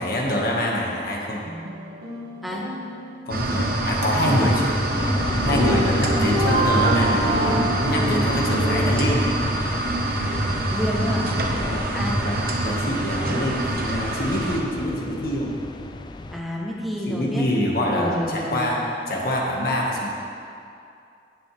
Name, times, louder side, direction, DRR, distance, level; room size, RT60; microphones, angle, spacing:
voice 1, 0.0-1.4 3.3-4.7 5.4-9.3 11.5-11.9 12.2-15.5 17.1-18.8 19.1-20.1, left 1 dB, 55° left, -3 dB, 1.9 m, -25 dB
sound 1, 1.5-3.8 5.4-9.1, right 1 dB, 70° right, 1.8 m, -27 dB
sound 2, 3.3-14.6, right 1 dB, 55° right, 1.0 m, -25 dB
sound 3, 4.9-16.4, left 2 dB, 25° left, 0.4 m, -33 dB
voice 2, 10.7-11.3 11.9-12.2 16.3-17.4 17.9-18.8, equal, ahead, -3 dB, 0.9 m, -29 dB
17.5 x 7.7 x 3.6 m, 2.5 s
head